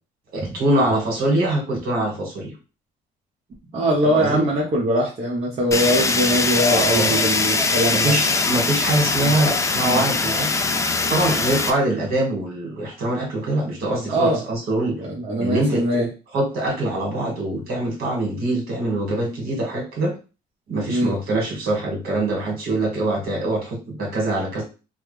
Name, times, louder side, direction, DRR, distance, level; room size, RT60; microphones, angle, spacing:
voice 1, 0.3-2.5 4.0-4.5 6.7-7.2 7.9-10.7 11.1-15.0 15.4-16.1 16.3-20.1 20.7-24.6, right 1 dB, 65° right, -1 dB, 1.8 m, -23 dB
voice 2, 3.7-8.2 9.2-9.3 9.8-10.1 14.1-14.4 15.0-16.1 20.9-21.1, right 1 dB, 40° right, -4 dB, 1.0 m, -22 dB
Fire, 5.7-11.7, left 3 dB, 20° left, 0.4 m, -21 dB
3.3 x 2.1 x 3.4 m, 0.32 s
cardioid pair, 110°, 17 cm